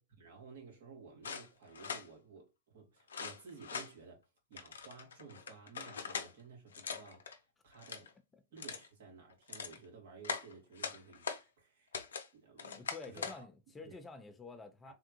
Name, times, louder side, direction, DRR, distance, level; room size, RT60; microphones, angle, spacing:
voice 1, 0.0-8.1 8.5-11.9 12.3-12.8 13.0-13.5 13.8-14.0 14.8-14.9, right 5 dB, 70° right, 2.0 m, -55 dB
sound 1, 1.2-2.1 3.1-3.9 4.6-6.3 6.7-7.4 7.7-8.1 8.6-8.9 9.3-9.8 10.2-11.4 11.9-12.3 12.6-13.4, left 6 dB, 80° left, 0.5 m, -42 dB
voice 2, 12.7-14.9, left 4 dB, 15° left, 0.6 m, -49 dB
3.5 x 2.3 x 2.9 m
hypercardioid pair, 105°, 0 cm